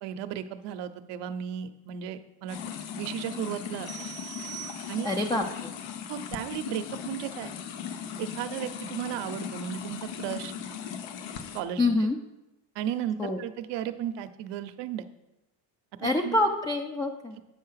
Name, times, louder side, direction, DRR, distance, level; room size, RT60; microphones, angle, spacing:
voice 1, 0.0-2.6 3.0-4.1 4.9-5.1 6.1-7.5 8.2-10.5 11.5-11.9 12.8-15.1 16.0-16.4, right 10 dB, 70° right, 10 dB, 0.8 m, -35 dB
sound 1, 2.5-11.6, left 8 dB, 85° left, 0.9 m, -38 dB
sound 2, 3.9-5.4, right 16 dB, 35° right, 0.6 m, -43 dB
voice 2, 5.0-5.7 11.8-12.2 13.2-13.4 16.0-17.4, left 2 dB, 10° left, 3 dB, 0.4 m, -26 dB
8.4 x 5.6 x 5.7 m, 0.96 s
cardioid pair, 140°, 44 cm